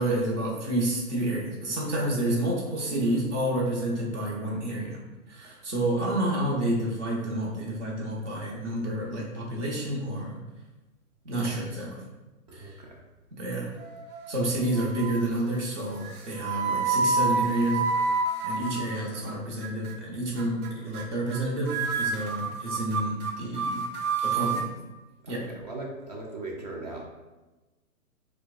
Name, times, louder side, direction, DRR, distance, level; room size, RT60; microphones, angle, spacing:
voice 1, 0.0-5.0 5.3-10.4 11.2-12.1 12.5-12.8 13.4-13.7 14.3-17.8 18.4-23.8 24.2-24.7 25.3-25.4, right 1 dB, 50° right, -2 dB, 1.2 m, -29 dB
voice 2, 12.5-13.0 14.6-14.7 25.2-27.1, right 2 dB, 30° right, 0 dB, 0.5 m, -39 dB
sound 1, 13.8-14.4 14.7-15.2 16.0-19.3 19.6-20.0 20.4-20.7 20.9-21.0 21.3-21.4 21.7-24.7, right 4 dB, 75° right, 0.7 m, -29 dB
4.4 x 2.4 x 2.5 m, 1.1 s
hypercardioid pair, 140°, 44 cm